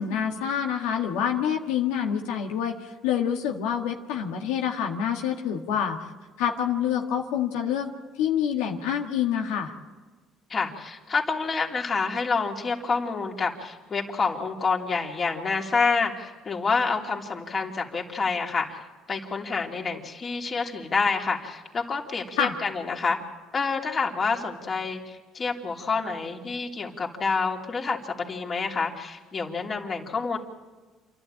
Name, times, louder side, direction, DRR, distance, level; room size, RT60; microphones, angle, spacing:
voice 1, 0.0-6.0 6.4-7.9 8.2-9.7 22.4-22.5, left 8 dB, 90° left, 2 dB, 1.7 m, -27 dB
voice 2, 10.5-18.8 19.1-23.2 23.5-30.4, left 4 dB, 35° left, 0 dB, 3.0 m, -28 dB
28.5 x 12.0 x 8.8 m, 1.3 s
supercardioid pair, 95°, 0 cm